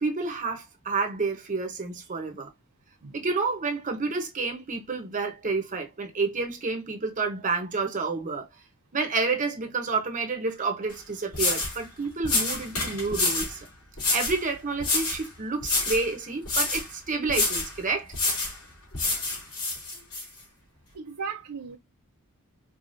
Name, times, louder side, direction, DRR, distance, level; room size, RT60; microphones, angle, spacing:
voice 1, 0.0-2.5 3.1-8.5 8.9-13.6 14.1-18.1, right 4 dB, 35° right, 0.8 m, -29 dB
sound 1, 10.9-11.0 11.3-11.8 12.2-13.5 14.0-14.4 14.8-15.3 15.6-16.1 16.5-16.9 17.3-17.7 18.1-18.6 18.9-20.2, left 3 dB, 65° left, 2.7 m, -27 dB
voice 2, 20.9-21.8, right 5 dB, 75° right, 0.6 m, -36 dB
4.8 x 2.4 x 2.5 m
head